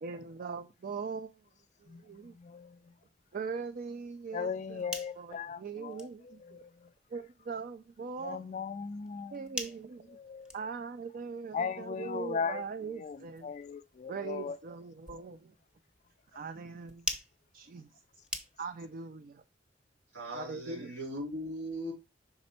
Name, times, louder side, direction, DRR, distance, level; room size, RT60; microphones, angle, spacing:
voice 1, 0.0-1.4 1.8-2.3 3.3-4.9 5.2-6.6 7.1-8.5 9.3-10.2 10.5-13.5 14.1-15.5 16.3-17.1 17.5-17.9 18.6-19.4 20.3-20.9, right 5 dB, 45° right, 0.4 m, -41 dB
voice 2, 1.9-2.9 4.3-6.9 8.2-9.4 10.1-10.6 11.5-14.6, left 6 dB, 40° left, 0.3 m, -38 dB
sound 1, 4.7-18.9, left 1 dB, 5° right, 0.8 m, -47 dB
voice 3, 20.1-21.9, equal, 70° right, 3.5 m, -38 dB
5.9 x 4.3 x 4.2 m
head